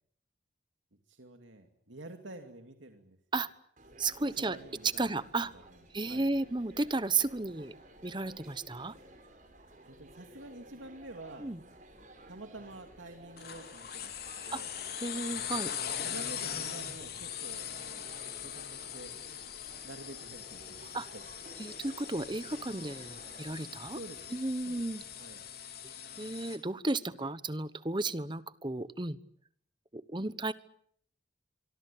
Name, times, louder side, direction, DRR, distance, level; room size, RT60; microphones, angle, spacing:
voice 1, 1.1-3.2 4.2-5.8 6.1-6.3 9.8-11.5 12.3-14.8 16.0-18.0 18.4-19.1 19.8-21.2 23.9-24.4 24.7-25.4 27.1-27.3, right 2 dB, 85° right, 5 dB, 2.6 m, -49 dB
sound 1, 3.8-23.5, right 1 dB, 40° right, 6.5 m, -55 dB
voice 2, 4.0-4.6 5.0-5.5 5.9-7.7 8.0-8.9 11.4-11.6 14.5-14.6 15.0-15.7 20.9-21.1 21.6-24.0 24.3-25.0 26.2-29.2 29.9-30.5, right 2 dB, 25° right, 15 dB, 1.1 m, -33 dB
sound 2, 13.4-26.6, left 9 dB, 55° left, 3.7 m, -41 dB
25.0 x 24.5 x 8.6 m, 0.66 s
head